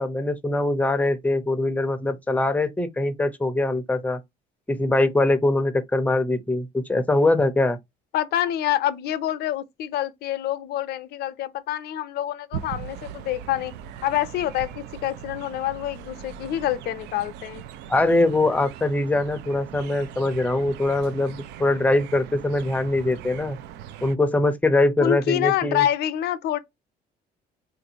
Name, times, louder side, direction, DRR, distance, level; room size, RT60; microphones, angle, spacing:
voice 1, 0.0-4.2 4.7-7.8 17.9-23.6 24.0-25.8, left 2 dB, 10° left, 0.5 m, -22 dB
voice 2, 8.1-13.7 14.0-17.6 25.0-26.6, left 12 dB, 70° left, 0.6 m, -26 dB
sound 1, 12.5-24.2, right 9 dB, 85° right, 0.4 m, -40 dB
3.7 x 2.5 x 2.8 m
cardioid pair, 110°, 17 cm